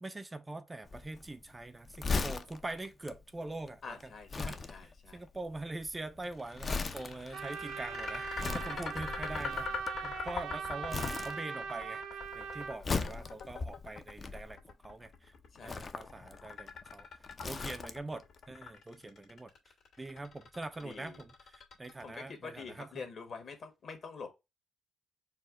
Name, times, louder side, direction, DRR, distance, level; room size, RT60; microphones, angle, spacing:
voice 1, 0.0-4.0 4.4-9.7 10.0-14.6 14.8-15.3 15.6-17.1 17.4-19.5 20.0-23.1, right 2 dB, 20° right, 0.4 m, -43 dB
Crumpling crinkling, 0.8-10.5 10.9-11.8 12.1-14.8 15.5-18.2 18.5-18.6, left 4 dB, 35° left, 0.5 m, -39 dB
voice 2, 3.8-5.2 8.6-8.8 15.5-15.9 20.8-21.2 22.0-24.3, left 5 dB, 50° left, 1.4 m, -46 dB
sound 1, 6.2-22.4, left 5 dB, 75° left, 1.7 m, -43 dB
Trumpet, 7.3-12.8, right 6 dB, 80° right, 0.7 m, -40 dB
4.5 x 2.1 x 4.7 m
cardioid pair, 90°, 0 cm